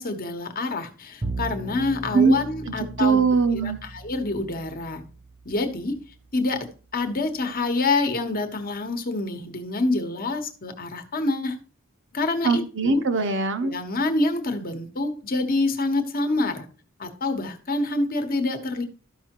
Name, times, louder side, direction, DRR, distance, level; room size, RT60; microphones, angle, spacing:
voice 1, 0.0-3.2 3.6-5.0 5.4-6.0 6.3-11.6 12.1-13.0 13.6-16.7 17.0-18.8, left 2 dB, 40° left, 1.1 m, -27 dB
Bowed string instrument, 1.2-7.6, right 2 dB, 25° right, 0.6 m, -38 dB
voice 2, 2.7-3.8 12.4-13.7, right 4 dB, 60° right, 0.9 m, -21 dB
13.0 x 5.5 x 2.9 m
head